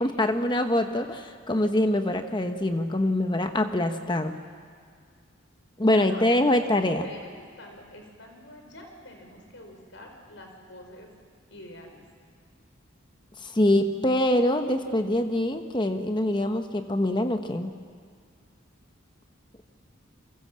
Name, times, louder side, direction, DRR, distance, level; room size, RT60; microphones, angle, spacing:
voice 1, 0.0-4.4 5.8-7.1 13.4-17.7, left 1 dB, 25° left, 7 dB, 1.0 m, -24 dB
voice 2, 5.9-7.3 7.6-11.1 11.5-12.0, left 1 dB, 70° left, 3 dB, 5.0 m, -46 dB
30.0 x 23.5 x 7.6 m, 2.1 s
head